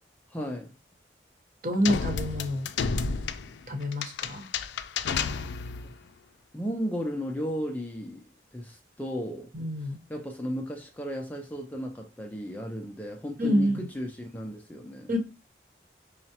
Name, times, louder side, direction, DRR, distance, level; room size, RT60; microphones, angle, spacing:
voice 1, 0.3-0.7 6.5-9.5 10.1-15.1, equal, 10° left, 0.4 m, -34 dB
voice 2, 1.6-2.7 3.7-4.5 9.5-10.0 13.4-13.9 15.1-15.2, equal, 45° right, 0.9 m, -27 dB
sound 1, 1.8-5.9, left 5 dB, 80° left, 0.4 m, -31 dB
5.5 x 2.0 x 2.8 m
head